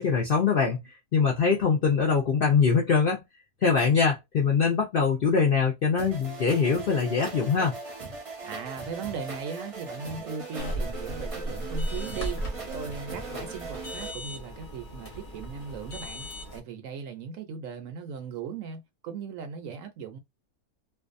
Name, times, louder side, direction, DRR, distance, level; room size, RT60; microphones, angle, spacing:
voice 1, 0.0-3.2 3.6-7.8, left 5 dB, 60° left, 0.5 m, -23 dB
sound 1, 6.0-14.1, right 3 dB, 30° right, 0.6 m, -40 dB
voice 2, 8.4-20.2, right 6 dB, 70° right, 0.9 m, -38 dB
sound 2, 10.6-16.6, equal, 45° left, 0.9 m, -36 dB
2.6 x 2.3 x 2.4 m
omnidirectional pair, 1.6 m